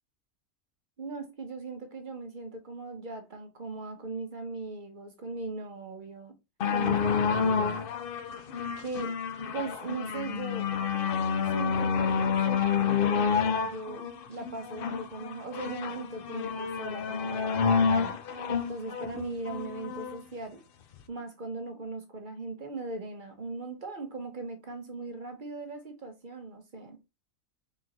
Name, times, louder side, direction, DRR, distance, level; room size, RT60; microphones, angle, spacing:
voice 1, 1.0-6.3 6.7-7.9 8.8-9.2 9.5-10.7 11.5-18.2 18.7-20.6 21.1-27.0, right 3 dB, 40° right, 0.9 m, -39 dB
sound 1, 6.6-20.2 20.9-21.0, left 6 dB, 55° left, 0.6 m, -29 dB
4.0 x 3.8 x 3.0 m
omnidirectional pair, 1.5 m